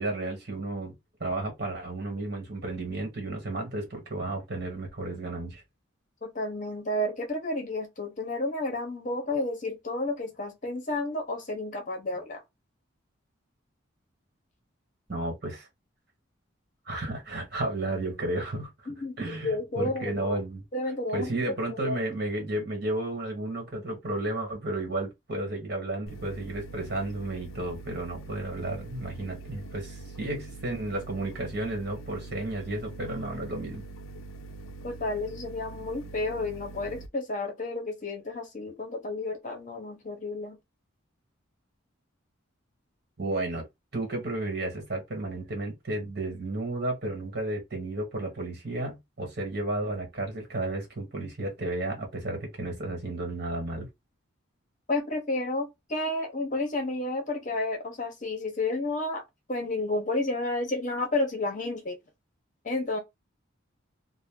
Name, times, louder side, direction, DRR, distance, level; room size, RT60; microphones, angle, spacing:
voice 1, 0.0-5.6 15.1-15.7 16.9-18.7 19.2-20.6 21.1-33.8 43.2-43.6 43.9-53.9, right 2 dB, 50° right, 1.3 m, -33 dB
voice 2, 6.2-12.4 18.9-20.4 20.7-21.3 21.7-22.0 30.3-30.4 34.8-40.6 54.9-59.2 59.5-62.0 62.6-63.0, left 2 dB, 35° left, 0.8 m, -31 dB
sound 1, 26.1-37.1, right 3 dB, 80° left, 0.4 m, -44 dB
2.5 x 2.1 x 3.6 m
head